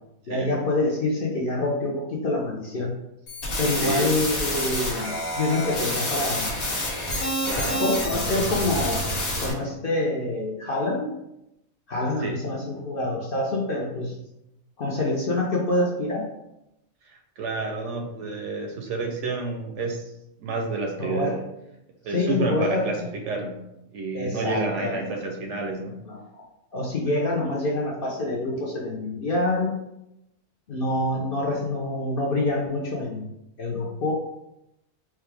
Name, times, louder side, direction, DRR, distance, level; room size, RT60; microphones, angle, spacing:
voice 1, 0.3-2.9 3.6-6.6 7.6-9.1 9.4-11.2 11.9-14.2 14.8-16.3 21.0-21.4 22.1-23.1 24.1-25.2 26.1-26.4 26.7-29.7 30.7-33.3 33.6-34.1, left 2 dB, 50° left, -3 dB, 0.7 m, -26 dB
sound 1, 3.3-9.5, left 1 dB, 80° left, 1.6 m, -28 dB
voice 2, 3.8-4.1 7.4-7.9 12.2-12.4 17.0-20.1 20.4-21.5 22.0-23.6 23.9-26.0, right 3 dB, 65° right, 3 dB, 0.8 m, -30 dB
4.6 x 2.3 x 3.3 m, 0.85 s
omnidirectional pair, 1.5 m